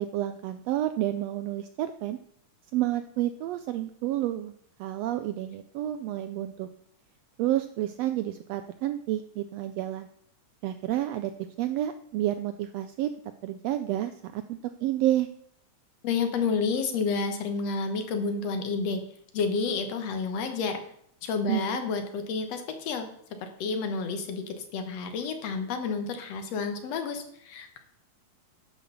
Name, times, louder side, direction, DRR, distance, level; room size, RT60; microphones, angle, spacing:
voice 1, 0.0-2.2 2.7-4.5 4.8-6.7 7.4-10.1 10.6-11.3 11.6-13.1 13.4-15.3 21.5-21.8, right 13 dB, 85° right, 10 dB, 1.4 m, -30 dB
voice 2, 16.0-19.0 19.3-20.8 21.2-23.1 23.4-27.8, left 4 dB, 65° left, 7 dB, 2.1 m, -30 dB
11.5 x 5.9 x 6.8 m, 0.67 s
omnidirectional pair, 3.4 m